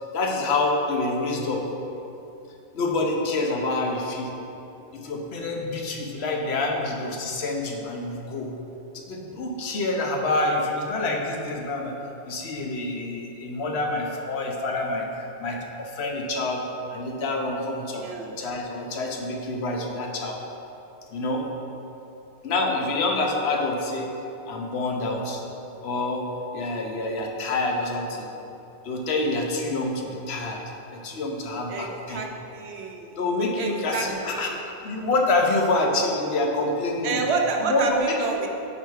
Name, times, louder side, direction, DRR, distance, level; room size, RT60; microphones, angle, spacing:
voice 1, 0.1-1.6 2.7-4.3 4.9-8.5 8.9-12.0 12.2-20.4 21.1-21.4 22.4-24.1 24.5-25.4 25.8-26.3 26.5-28.3 28.8-30.6 30.9-32.3 33.2-34.6 34.8-38.4, left 2 dB, 85° left, 1 dB, 1.0 m, -27 dB
voice 2, 17.9-18.3 29.9-30.0 31.7-33.1 33.6-34.6 37.0-38.5, right 4 dB, 85° right, 2 dB, 0.9 m, -29 dB
4.9 x 4.6 x 4.6 m, 2.9 s
omnidirectional pair, 1.1 m